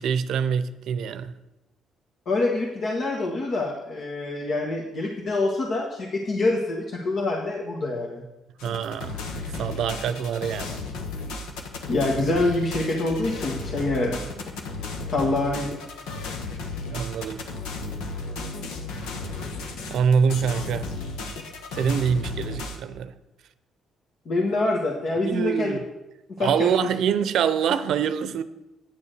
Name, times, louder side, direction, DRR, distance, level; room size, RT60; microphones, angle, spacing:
voice 1, 0.0-1.3 8.6-9.2 9.5-10.8 16.9-17.4 19.9-20.9 21.7-23.1 25.2-25.8 26.4-28.4, right 7 dB, 70° right, 0.6 m, -25 dB
voice 2, 2.3-8.2 11.9-14.3 15.1-15.7 24.3-25.7 26.3-26.9, left 2 dB, 60° left, 1.7 m, -26 dB
sound 1, 8.6-22.8, left 3 dB, 90° left, 1.3 m, -34 dB
9.7 x 7.0 x 6.6 m
supercardioid pair, 75°, 0 cm